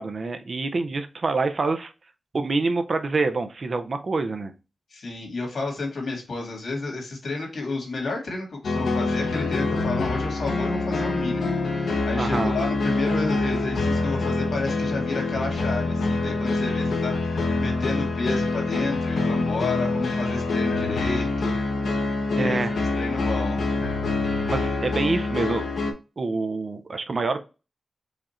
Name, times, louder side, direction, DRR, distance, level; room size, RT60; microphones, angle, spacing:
voice 1, 0.0-1.9 2.3-4.5 12.1-12.5 22.4-22.7 24.5-25.7 26.2-27.4, right 3 dB, 40° right, 9 dB, 0.5 m, -26 dB
voice 2, 4.9-21.6 22.3-23.7, left 3 dB, 70° left, 1 dB, 2.0 m, -31 dB
sound 1, 8.6-25.9, left 3 dB, 85° left, 0.9 m, -25 dB
5.0 x 2.5 x 4.2 m, 0.30 s
wide cardioid pair, 170°, 0 cm